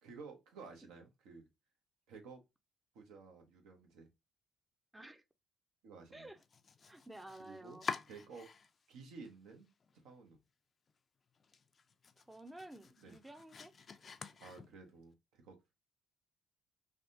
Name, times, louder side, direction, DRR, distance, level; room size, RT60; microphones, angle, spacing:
voice 1, 0.0-1.5 2.1-2.4 2.9-4.1 5.8-6.3 7.4-7.8 8.1-8.5 8.9-9.7 9.9-10.4 13.0-13.2 14.4-15.6, right 4 dB, 85° right, 0.9 m, -53 dB
voice 2, 4.9-5.2 6.1-6.4 6.9-7.9 12.3-13.7, right 1 dB, 10° right, 0.5 m, -52 dB
Domestic sounds home sounds, 6.4-8.9 9.2-10.0 10.4-10.5 10.9-11.0 11.4-15.0, left 5 dB, 45° left, 0.4 m, -48 dB
3.4 x 2.3 x 2.6 m
supercardioid pair, 70°, 0 cm